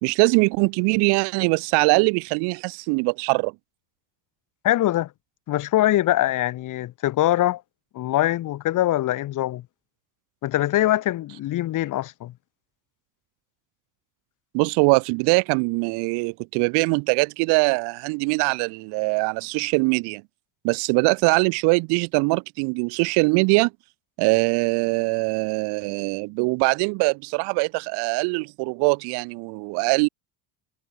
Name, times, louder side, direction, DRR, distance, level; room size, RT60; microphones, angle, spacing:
voice 1, 0.0-3.5 14.5-20.2 20.6-23.7 24.2-30.1, right 31 dB, 80° right, 0.6 m, -22 dB
voice 2, 4.6-5.1 5.5-7.6 7.9-9.6 10.4-12.3, left 14 dB, 50° left, 1.4 m, -23 dB
cardioid pair, 125°, 40 cm